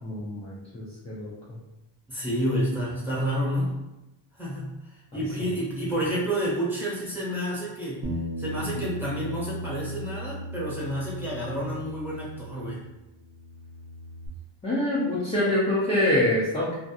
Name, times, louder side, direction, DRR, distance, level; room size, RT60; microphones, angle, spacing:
voice 1, 0.0-1.3 14.6-16.7, left 1 dB, 15° left, -8 dB, 0.5 m, -25 dB
voice 2, 2.1-3.7 4.3-8.1 8.4-12.8, equal, 5° right, -8 dB, 1.1 m, -29 dB
Bass guitar, 8.0-12.8 13.1-14.3, equal, 35° right, 0.6 m, -37 dB
2.6 x 2.5 x 2.4 m, 0.97 s
cardioid pair, 130°, 49 cm